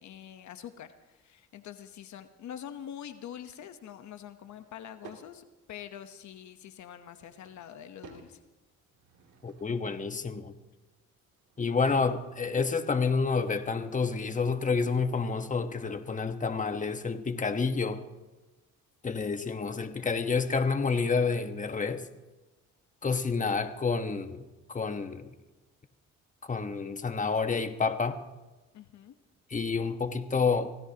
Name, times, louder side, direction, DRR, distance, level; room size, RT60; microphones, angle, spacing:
voice 1, 0.0-8.4 28.7-29.2, left 10 dB, 70° left, 9 dB, 1.0 m, -45 dB
Drawer open or close / Wood, 4.3-5.3 7.0-8.3 8.8-10.0 11.3-12.8, right 6 dB, 85° right, 2.7 m, -54 dB
voice 2, 9.4-10.5 11.6-18.0 19.0-22.0 23.0-24.4 24.7-25.3 26.4-28.2 29.5-30.7, left 4 dB, 25° left, 8 dB, 1.2 m, -29 dB
25.5 x 17.0 x 2.9 m, 1.2 s
cardioid pair, 90°, 30 cm